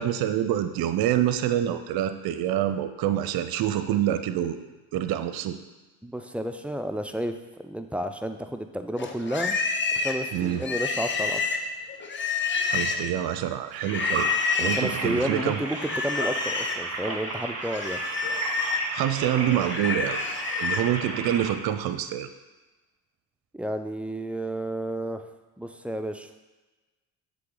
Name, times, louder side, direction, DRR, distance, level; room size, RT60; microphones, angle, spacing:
voice 1, 0.0-4.7 4.9-5.6 10.3-10.6 12.6-14.3 14.6-15.6 18.9-20.2 20.6-22.3, right 11 dB, 60° right, 10 dB, 0.6 m, -26 dB
voice 2, 6.0-9.6 9.9-11.5 14.6-18.0 23.5-25.2 25.6-26.3, right 1 dB, 5° right, 7 dB, 0.3 m, -31 dB
Livestock farm animals working animals, 9.0-13.2 13.8-14.9 15.7-16.8 17.2-20.9, left 4 dB, 25° left, 0.7 m, -29 dB
sound 1, 13.9-21.5, right 3 dB, 35° right, 1.2 m, -34 dB
7.6 x 3.5 x 3.8 m, 1.2 s
hypercardioid pair, 60°, 42 cm